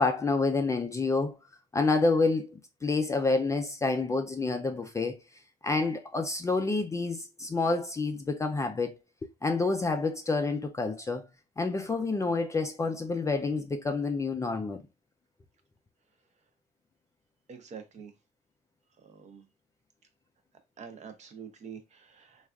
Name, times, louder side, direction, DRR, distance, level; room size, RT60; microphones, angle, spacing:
voice 1, 0.0-1.4 1.7-5.2 5.6-9.0 9.4-11.3 11.6-14.8, left 3 dB, 20° left, 0.3 m, -28 dB
voice 2, 17.5-18.1 19.2-19.4 20.8-21.8 22.2-22.3, right 6 dB, 45° right, 0.7 m, -45 dB
3.3 x 2.4 x 2.4 m
cardioid pair, 110°, 17 cm